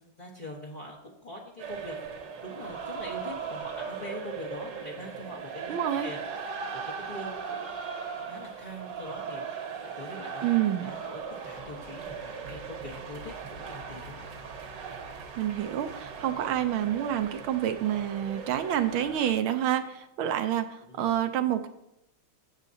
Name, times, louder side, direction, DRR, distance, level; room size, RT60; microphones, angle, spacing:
voice 1, 0.0-5.8 6.0-7.7 8.2-14.3 20.8-21.2, left 1 dB, 35° left, -4 dB, 0.8 m, -43 dB
sound 1, 1.6-19.3, right 6 dB, 60° right, 1.7 m, -39 dB
voice 2, 5.6-6.1 10.4-10.9 15.4-21.7, right 11 dB, 75° right, 8 dB, 1.4 m, -28 dB
14.5 x 7.3 x 2.7 m, 0.83 s
omnidirectional pair, 2.4 m